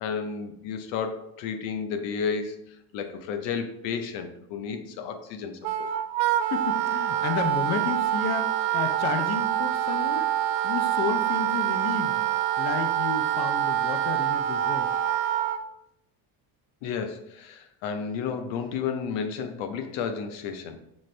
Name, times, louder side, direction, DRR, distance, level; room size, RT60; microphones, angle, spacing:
voice 1, 0.0-5.9 16.8-20.8, left 6 dB, 85° left, 7 dB, 0.7 m, -32 dB
Wind instrument woodwind instrument, 5.6-15.6, right 12 dB, 80° right, 0.5 m, -26 dB
voice 2, 6.5-10.3 10.6-12.2 12.6-14.9, left 6 dB, 40° left, 7 dB, 0.5 m, -31 dB
6.0 x 2.5 x 3.2 m, 0.78 s
cardioid pair, 120°, 43 cm